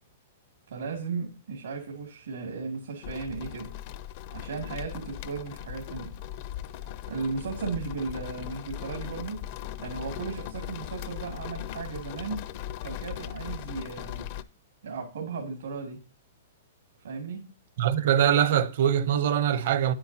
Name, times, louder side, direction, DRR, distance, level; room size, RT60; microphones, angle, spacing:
voice 1, 0.7-3.7 4.3-6.1 7.1-9.4 9.8-12.5 12.8-14.3 14.8-16.0 17.0-17.5, right 4 dB, 85° right, 2.6 m, -35 dB
sound 1, 3.0-14.4, left 12 dB, 45° left, 0.5 m, -39 dB
voice 2, 17.8-19.9, right 10 dB, 65° right, 0.9 m, -23 dB
9.6 x 8.8 x 2.9 m
hypercardioid pair, 140°, 0 cm